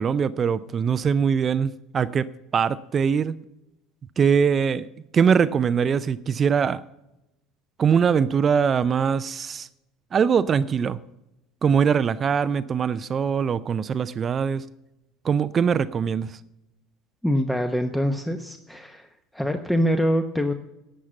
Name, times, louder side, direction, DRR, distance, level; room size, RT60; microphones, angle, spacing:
voice 1, 0.0-3.4 4.2-4.9 5.1-6.8 7.8-9.7 10.1-11.0 11.6-14.7 15.2-16.4, right 7 dB, 35° right, 0.5 m, -22 dB
voice 2, 17.2-19.1 19.3-20.5, equal, 5° left, 0.9 m, -24 dB
12.0 x 7.5 x 6.9 m
figure-of-eight pair, 70°, 0 cm